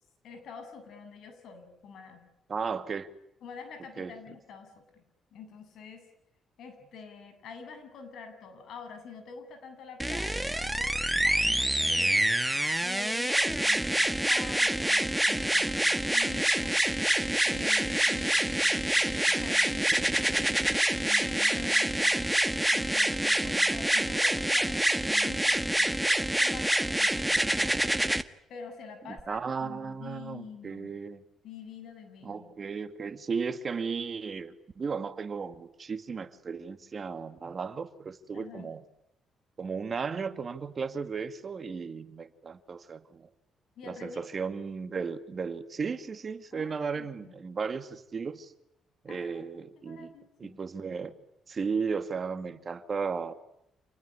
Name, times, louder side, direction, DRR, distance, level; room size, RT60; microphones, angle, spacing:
voice 1, 0.2-2.2 3.4-5.0 5.3-6.1 6.6-12.3 12.8-20.6 21.0-22.4 22.7-27.9 28.5-30.9 31.4-32.5 38.3-38.7 43.8-44.4 46.5-47.4 49.1-49.4 49.8-50.6, left 5 dB, 70° left, 8 dB, 7.8 m, -47 dB
voice 2, 2.5-3.1 4.0-4.1 23.5-23.6 29.0-31.2 32.2-38.8 39.6-43.3 43.9-48.5 49.0-50.1 50.4-51.1 51.5-53.3, right 5 dB, 40° right, 10 dB, 2.1 m, -35 dB
sound 1, 10.0-28.2 29.2-29.3, right 1 dB, 5° right, 1.4 m, -26 dB
28.0 x 20.5 x 9.9 m, 0.81 s
cardioid pair, 90°, 0 cm